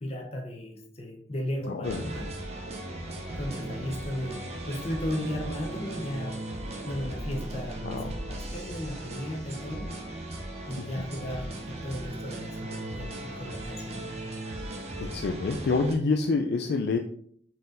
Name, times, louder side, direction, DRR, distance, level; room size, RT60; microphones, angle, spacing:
voice 1, 0.0-2.3 3.4-6.4 6.8-9.9 10.7-14.0, left 1 dB, 35° left, 1 dB, 0.7 m, -35 dB
voice 2, 1.7-2.1 7.8-8.1 10.8-11.0 15.0-17.0, left 3 dB, 60° left, 3 dB, 0.3 m, -27 dB
sound 1, 1.8-16.0, right 1 dB, 35° right, 0.5 m, -37 dB
4.1 x 3.8 x 2.5 m, 0.62 s
head